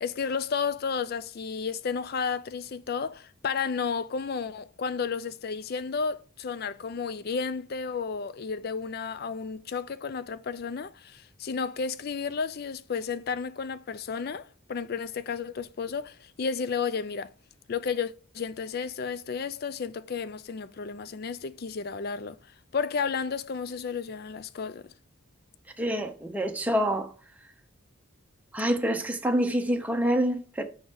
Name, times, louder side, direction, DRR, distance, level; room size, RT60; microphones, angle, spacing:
voice 1, 0.0-17.3 17.7-22.4 22.7-24.9, left 5 dB, 45° left, 0.4 m, -32 dB
voice 2, 25.8-27.1 28.5-30.6, equal, 5° right, 0.7 m, -26 dB
6.2 x 3.9 x 6.2 m
head